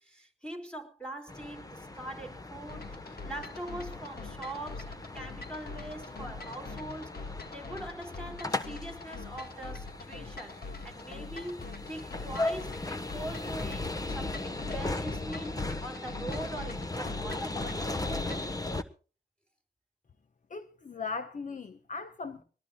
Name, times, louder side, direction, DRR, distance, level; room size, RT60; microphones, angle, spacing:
voice 1, 0.0-2.9 3.2-7.1 7.5-10.6 10.8-13.9 14.1-15.5 15.8-17.9, right 1 dB, 5° left, 4.5 m, -42 dB
sound 1, 1.3-18.8, left 2 dB, 20° left, 1.2 m, -38 dB
sound 2, 2.7-18.6, left 3 dB, 65° left, 1.8 m, -43 dB
voice 2, 20.5-22.4, left 4 dB, 50° left, 1.0 m, -38 dB
22.0 x 19.0 x 2.4 m
wide cardioid pair, 85°, 17 cm